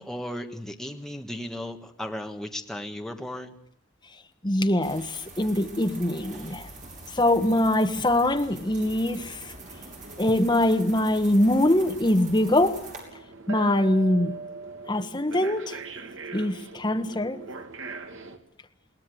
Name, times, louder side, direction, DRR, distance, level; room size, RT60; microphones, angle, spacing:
voice 1, 0.0-3.5, left 1 dB, 5° left, 1.4 m, -35 dB
voice 2, 4.4-6.7 7.1-9.5 10.2-12.8 13.5-14.3 14.9-15.8 16.3-17.4, left 1 dB, 25° left, 1.3 m, -23 dB
sound 1, 4.8-13.0, right 2 dB, 40° right, 5.5 m, -45 dB
sound 2, 5.2-18.4, right 3 dB, 85° right, 2.1 m, -43 dB
21.5 x 18.0 x 7.8 m
head